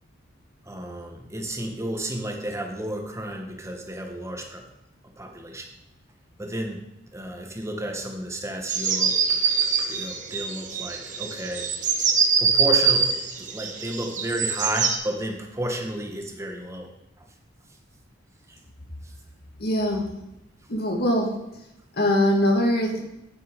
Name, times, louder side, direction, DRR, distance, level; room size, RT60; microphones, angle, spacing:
voice 1, 0.6-4.6 5.2-5.7 6.4-9.2 9.9-11.7 12.4-16.9 18.5-18.6, right 1 dB, 15° right, 2 dB, 1.3 m, -32 dB
sound 1, 8.7-15.0, right 6 dB, 40° right, 1.1 m, -24 dB
voice 2, 19.6-20.1 20.7-21.3 22.0-23.0, left 1 dB, 55° left, 1 dB, 2.0 m, -22 dB
9.6 x 5.9 x 5.2 m, 0.87 s
head